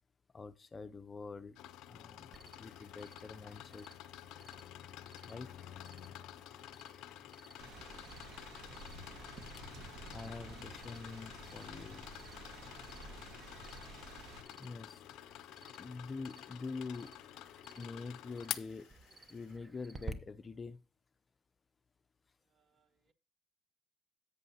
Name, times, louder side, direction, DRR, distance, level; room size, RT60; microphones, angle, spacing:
voice 1, 0.3-1.6 1.9-3.9 5.2-5.5 10.1-12.1 14.6-15.0 15.8-17.2 17.8-18.9 19.3-20.8, left 4 dB, 25° left, 0.5 m, -45 dB
sound 1, 1.5-19.5, left 13 dB, 75° left, 0.4 m, -50 dB
Cricket, 2.3-20.1, right 3 dB, 20° right, 0.8 m, -56 dB
sound 2, 7.6-14.4, right 3 dB, 65° right, 1.6 m, -51 dB
voice 2, 22.4-23.1, right 7 dB, 40° right, 1.0 m, -75 dB
11.0 x 8.2 x 2.8 m
cardioid pair, 105°, 0 cm